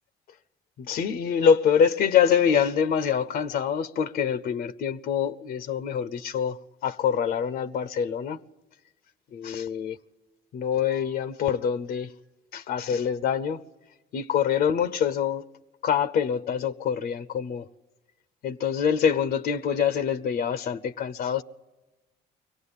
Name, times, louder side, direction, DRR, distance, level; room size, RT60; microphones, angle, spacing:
voice 1, 0.8-8.4 9.3-10.0 10.5-12.1 12.5-13.6 14.1-15.4 15.8-17.7 18.4-21.4, left 7 dB, 65° left, 0.8 m, -25 dB
23.5 x 18.0 x 10.0 m
cardioid pair, 110°, 17 cm